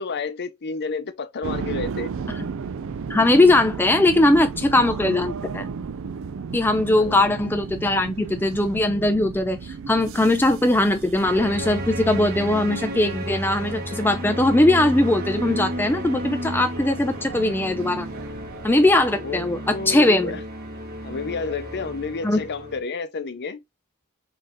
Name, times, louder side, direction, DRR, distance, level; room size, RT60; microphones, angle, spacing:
voice 1, 0.0-2.1 6.9-7.2 19.2-20.4 21.0-23.6, left 4 dB, 50° left, 0.7 m, -31 dB
sound 1, 1.4-19.2, right 5 dB, 65° right, 0.4 m, -35 dB
voice 2, 3.1-5.7 6.5-18.1 18.6-20.3 22.2-22.4, left 2 dB, 10° left, 0.4 m, -20 dB
sound 2, 11.2-22.8, equal, 45° right, 1.6 m, -32 dB
4.3 x 3.3 x 3.5 m
head